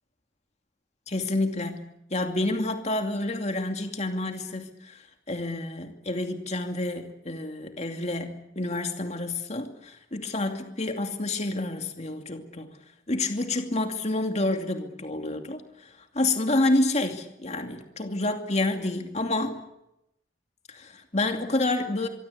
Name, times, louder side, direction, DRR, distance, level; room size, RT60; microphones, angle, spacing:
voice 1, 1.1-5.0 5.3-12.8 13.1-15.9 16.1-19.6 20.7-22.1, left 2 dB, 40° left, 5 dB, 2.6 m, -29 dB
24.5 x 24.0 x 8.5 m, 0.85 s
head